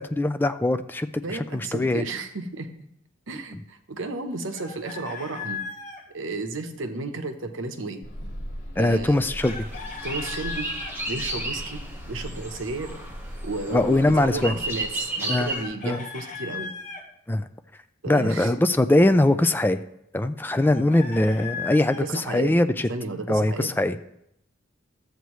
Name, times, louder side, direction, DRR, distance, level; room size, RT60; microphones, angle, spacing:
voice 1, 0.0-2.1 8.8-9.5 13.7-14.5 15.3-15.5 15.8-16.0 17.3-17.5 18.1-19.8 20.1-22.9 23.3-24.0, left 1 dB, 10° left, 9 dB, 0.3 m, -22 dB
voice 2, 1.2-2.7 3.3-5.6 6.1-8.0 8.7-9.3 10.0-10.7 11.1-12.9 13.4-16.7 18.0-18.5 22.0-22.5 22.9-23.7, right 3 dB, 75° right, 7 dB, 1.0 m, -33 dB
Chicken rooster, 4.5-6.0 9.4-11.0 15.5-17.0 20.6-22.1, left 5 dB, 40° left, 1.4 m, -37 dB
sound 1, 8.0-14.8, equal, 70° left, 2.3 m, -39 dB
sound 2, 9.4-15.6, right 1 dB, 10° right, 1.3 m, -34 dB
13.0 x 8.0 x 3.2 m, 0.79 s
head